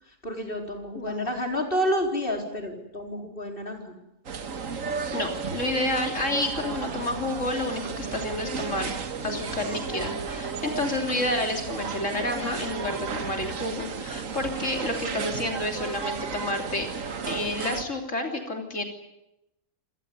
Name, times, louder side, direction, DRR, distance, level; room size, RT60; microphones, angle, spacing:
voice 1, 0.2-3.9, equal, 45° left, 2 dB, 4.6 m, -29 dB
voice 2, 1.0-1.3 4.9-9.0 9.2-16.9 17.3-18.8, left 1 dB, 70° left, 3 dB, 3.6 m, -30 dB
sound 1, 4.3-17.9, right 5 dB, 85° right, 1.8 m, -33 dB
26.5 x 18.5 x 9.7 m, 0.91 s
omnidirectional pair, 1.3 m